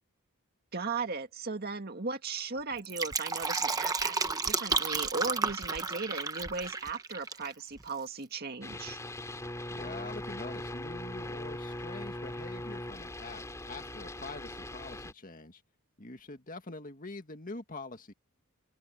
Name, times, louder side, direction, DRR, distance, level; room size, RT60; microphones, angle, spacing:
voice 1, 0.7-9.0, right 4 dB, 45° right, 2.1 m, -37 dB
Fill (with liquid), 2.7-7.5 7.8-7.9, right 4 dB, 15° right, 1.0 m, -32 dB
sound 1, 8.6-15.1, left 1 dB, 15° left, 3.2 m, -40 dB
voice 2, 9.7-15.6 16.0-18.1, left 3 dB, 40° left, 1.9 m, -44 dB
open air
head